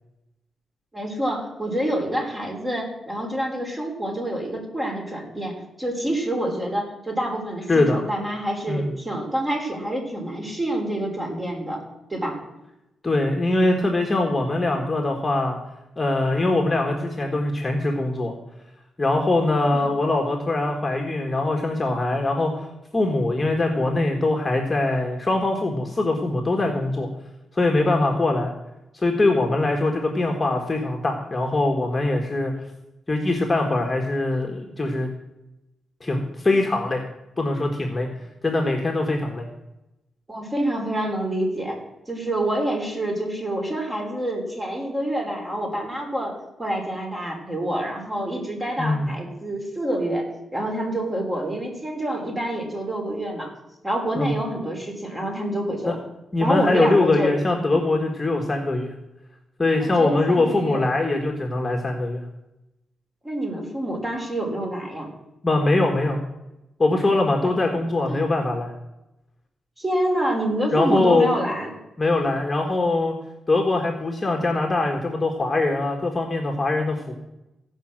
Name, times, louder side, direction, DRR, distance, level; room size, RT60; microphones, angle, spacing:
voice 1, 0.9-11.8 12.1-12.4 19.7-19.9 40.3-41.8 42.1-46.3 46.6-53.5 53.8-56.0 56.4-57.3 59.8-60.8 63.2-65.1 67.4-67.5 68.1-68.2 69.8-71.7, right 1 dB, 20° right, 1 dB, 3.3 m, -27 dB
voice 2, 7.7-8.0 8.7-8.9 13.0-15.6 16.0-18.3 19.0-22.7 22.9-27.1 27.5-28.5 28.9-32.5 33.1-35.1 36.0-37.0 37.4-38.1 38.4-39.5 48.8-49.1 54.1-54.3 55.9-56.0 56.3-58.9 59.6-62.2 65.4-66.2 66.8-68.7 70.7-71.3 72.0-73.1 73.5-77.1, left 2 dB, 20° left, 2 dB, 1.6 m, -22 dB
15.5 x 5.5 x 7.5 m, 0.92 s
cardioid pair, 115°, 0 cm